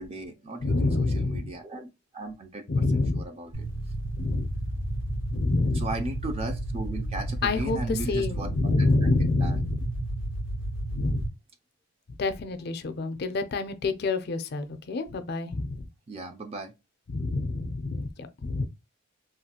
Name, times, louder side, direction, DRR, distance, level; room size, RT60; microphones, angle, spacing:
voice 1, 0.0-1.9 2.1-3.7 5.7-9.6 16.1-16.7, right 2 dB, 30° right, 0.4 m, -37 dB
voice 2, 0.6-1.5 2.7-3.3 4.2-4.5 5.3-5.9 7.4-9.8 10.9-11.2 12.2-15.9 17.1-18.6, left 3 dB, 50° left, 0.4 m, -27 dB
sound 1, 3.5-11.3, right 1 dB, 65° right, 0.7 m, -32 dB
3.0 x 2.3 x 2.8 m
head